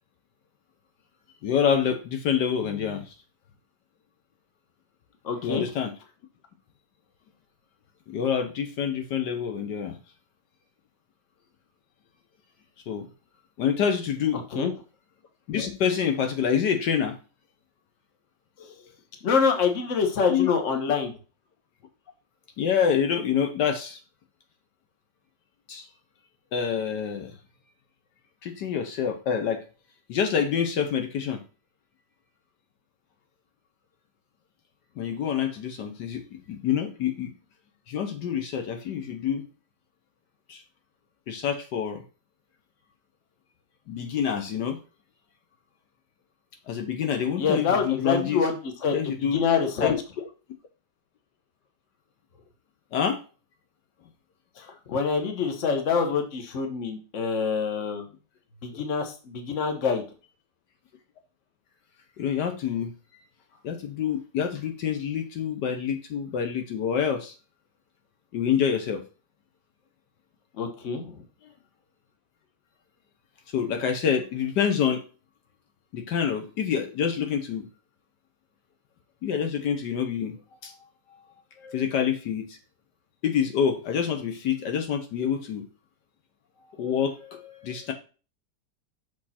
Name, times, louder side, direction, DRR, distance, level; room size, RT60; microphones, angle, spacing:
voice 1, 1.4-3.1 5.4-5.9 8.1-10.0 12.9-13.1 13.6-14.4 15.5-17.1 20.3-20.5 22.6-24.0 25.7-25.9 26.5-27.3 28.4-29.6 30.1-31.4 35.0-37.3 37.9-39.4 40.5-40.6 41.3-42.0 43.9-44.8 46.7-48.4 48.9-49.4 49.8-50.0 52.9-53.2 62.2-62.9 63.6-67.3 68.3-69.0 73.5-75.0 75.9-77.7 79.2-80.3 80.6-80.7 81.6-82.6 83.2-85.6 86.6-87.9, left 8 dB, 75° left, 5 dB, 1.5 m, -27 dB
voice 2, 5.2-5.7 14.5-14.7 18.6-18.8 19.2-21.1 47.4-49.9 54.6-58.1 58.6-60.0 70.6-71.2, left 6 dB, 45° left, 5 dB, 1.4 m, -26 dB
6.3 x 5.2 x 4.2 m, 0.34 s
omnidirectional pair, 1.9 m